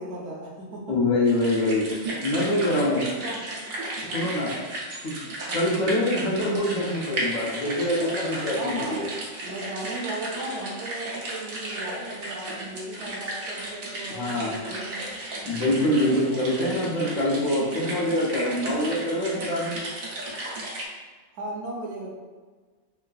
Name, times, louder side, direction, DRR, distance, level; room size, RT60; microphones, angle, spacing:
voice 1, 0.0-1.0 2.7-3.6 4.0-4.3 5.5-5.7 8.6-9.0 9.4-15.0 16.1-16.6 21.3-22.1, right 2 dB, 65° right, -3 dB, 0.8 m, -36 dB
voice 2, 0.9-1.9 2.2-3.0 4.0-4.5 5.0-5.2 5.5-9.1 14.1-14.5 15.4-19.8, left 1 dB, 90° left, -4 dB, 1.2 m, -25 dB
sound 1, 1.2-20.9, right 1 dB, 85° right, 1.2 m, -34 dB
3.5 x 2.3 x 2.3 m, 1.4 s
omnidirectional pair, 1.4 m